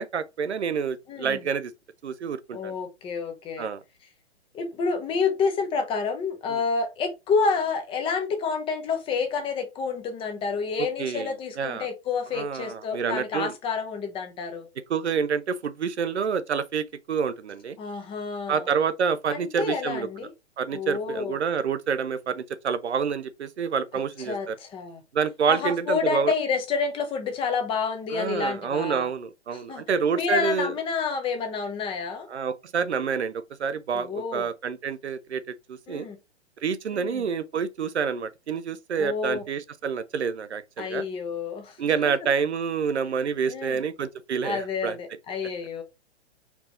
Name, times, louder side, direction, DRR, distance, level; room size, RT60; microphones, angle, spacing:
voice 1, 0.0-1.7 2.0-2.7 3.6-3.8 6.5-6.6 11.0-11.9 12.3-13.5 14.9-17.8 18.5-20.1 20.6-24.6 25.1-26.3 28.1-30.7 32.3-33.3 33.6-35.4 35.7-36.1 36.6-41.0 41.8-45.0, right 6 dB, 80° right, 0.7 m, -28 dB
voice 2, 1.1-1.4 2.5-3.7 4.5-14.7 17.8-18.7 19.3-20.3 20.7-21.4 24.3-25.0 25.5-29.1 29.5-29.8 30.1-32.3 33.9-34.5 35.9-36.2 36.9-37.2 39.0-39.4 40.8-41.8 42.0-42.1 43.5-43.8 44.4-45.8, left 5 dB, 15° left, 0.8 m, -29 dB
4.5 x 2.8 x 3.8 m
figure-of-eight pair, 125°, 33 cm